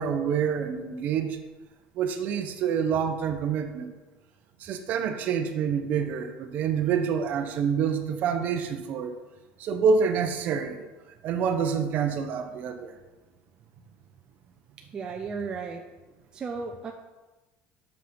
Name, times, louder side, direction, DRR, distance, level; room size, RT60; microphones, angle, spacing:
voice 1, 0.0-1.4 2.0-3.9 4.6-9.2 9.6-10.9 11.2-12.9, right 6 dB, 45° right, 7 dB, 0.9 m, -27 dB
voice 2, 14.8-15.8 16.3-16.9, right 5 dB, 20° right, 3 dB, 0.5 m, -34 dB
7.4 x 5.9 x 5.5 m, 1.2 s
cardioid pair, 165°, 4 cm